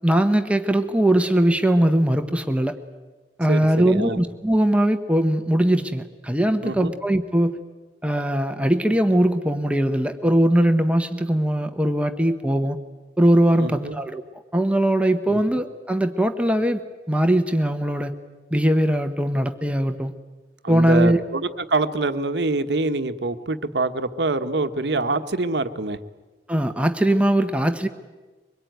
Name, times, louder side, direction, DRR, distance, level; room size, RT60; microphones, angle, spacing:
voice 1, 0.0-2.8 3.4-7.6 8.0-12.8 13.2-14.2 14.5-16.8 17.1-18.1 18.5-20.1 20.7-21.2 26.5-27.9, right 1 dB, 5° right, 7 dB, 1.0 m, -20 dB
voice 2, 3.5-4.2 6.6-6.9 13.6-14.0 15.3-15.4 20.6-26.0, right 3 dB, 70° right, 9 dB, 1.2 m, -25 dB
24.5 x 22.0 x 9.3 m, 1.3 s
head